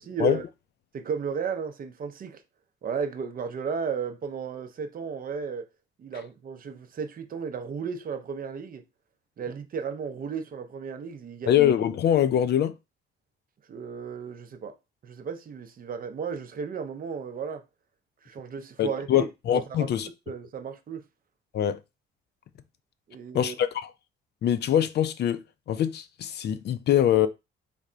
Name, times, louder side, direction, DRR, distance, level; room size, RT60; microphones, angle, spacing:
voice 1, 0.1-0.4 0.9-2.4 2.8-5.7 6.0-8.8 9.4-11.6 13.7-14.7 15.0-17.6 18.2-20.0 20.3-21.0 23.1-23.6, right 6 dB, 45° right, 0.6 m, -34 dB
voice 2, 11.5-12.7 18.8-20.1 21.5-21.8 23.3-23.9 24.4-27.3, left 10 dB, 55° left, 0.4 m, -24 dB
3.4 x 2.1 x 3.8 m
cardioid pair, 90°, 20 cm